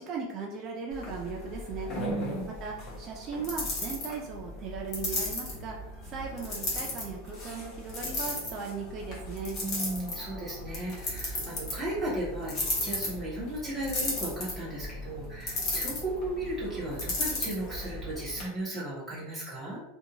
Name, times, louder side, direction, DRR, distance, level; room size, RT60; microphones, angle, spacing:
voice 1, 0.0-1.9 2.6-9.6, right 4 dB, 25° right, -1 dB, 0.3 m, -38 dB
sound 1, 0.9-18.4, left 2 dB, 35° left, 0.8 m, -36 dB
voice 2, 1.9-2.5 9.6-19.8, right 1 dB, ahead, -7 dB, 0.7 m, -35 dB
2.5 x 2.2 x 2.8 m, 0.94 s
supercardioid pair, 175°, 0 cm